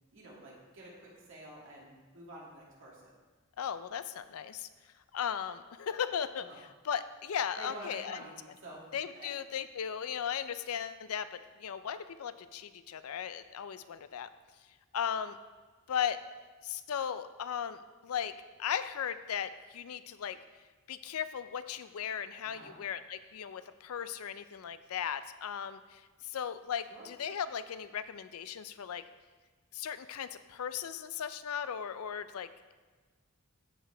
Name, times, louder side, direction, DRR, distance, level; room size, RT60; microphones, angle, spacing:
voice 1, 0.1-3.1 7.6-8.3 8.6-8.9 9.1-9.3 22.4-22.8 26.9-27.1, right 1 dB, 65° right, -5 dB, 2.5 m, -48 dB
voice 2, 3.6-4.7 5.1-6.5 6.9-8.2 8.9-14.3 14.9-15.4 15.9-16.2 16.6-20.4 20.9-29.0 29.7-32.7, left 8 dB, 80° left, 12 dB, 0.4 m, -37 dB
14.0 x 4.7 x 3.4 m, 1.3 s
head